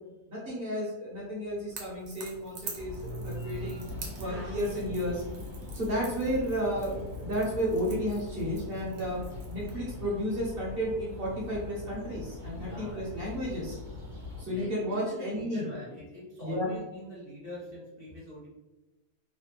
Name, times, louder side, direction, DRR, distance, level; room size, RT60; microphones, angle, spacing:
voice 1, 0.3-3.9 4.2-5.2 5.7-9.2 9.5-13.8 14.4-15.7 16.4-16.7, equal, 50° right, -5 dB, 0.8 m, -32 dB
Crackle / Crack, 1.7-9.8, right 4 dB, 65° right, 1.1 m, -47 dB
sound 1, 2.8-14.5, left 1 dB, 90° right, 0.4 m, -41 dB
voice 2, 12.5-13.3 14.4-18.5, left 1 dB, 65° left, -7 dB, 0.4 m, -44 dB
3.2 x 2.0 x 2.9 m, 1.0 s
omnidirectional pair, 1.6 m